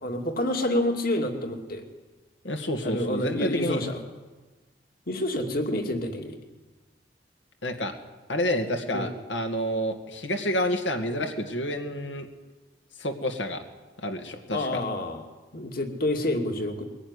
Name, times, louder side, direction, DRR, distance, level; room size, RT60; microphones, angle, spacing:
voice 1, 0.0-1.8 2.8-4.0 5.1-6.4 8.9-9.1 14.5-15.2 15.5-16.8, left 1 dB, 55° left, 5 dB, 2.4 m, -28 dB
voice 2, 2.4-3.8 7.6-7.9 8.3-12.3 13.0-13.6 14.0-14.8, equal, 85° left, 4 dB, 2.1 m, -29 dB
22.5 x 17.5 x 9.8 m, 1.2 s
head